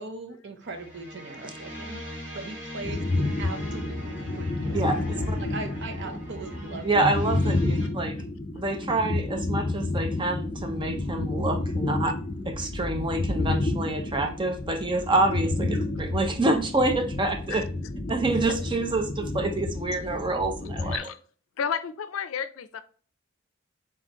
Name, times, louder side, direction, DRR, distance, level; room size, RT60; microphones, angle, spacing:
voice 1, 0.0-2.1 2.3-7.2, right 3 dB, 60° right, 7 dB, 0.7 m, -40 dB
sound 1, 0.6-7.9, equal, 10° right, 2.2 m, -41 dB
sound 2, 2.8-21.0, left 2 dB, 30° left, 0.6 m, -30 dB
voice 2, 4.7-5.4 6.8-8.1 8.6-12.1 12.5-17.6 18.1-21.1, right 2 dB, 25° right, 5 dB, 0.6 m, -27 dB
voice 3, 21.6-22.8, left 7 dB, 80° left, 12 dB, 0.4 m, -31 dB
4.2 x 3.8 x 2.9 m, 0.42 s
head